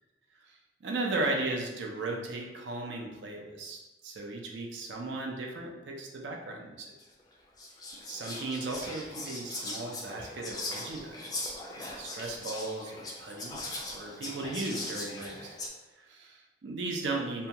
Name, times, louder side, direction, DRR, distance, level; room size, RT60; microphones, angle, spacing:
voice 1, 0.5-6.9 8.1-13.6 13.9-15.6 16.0-17.5, right 2 dB, 80° right, 1 dB, 0.5 m, -36 dB
Whispering, 7.0-7.1 7.6-15.7, left 2 dB, 20° left, 0.3 m, -40 dB
2.7 x 2.2 x 2.8 m, 1.1 s
head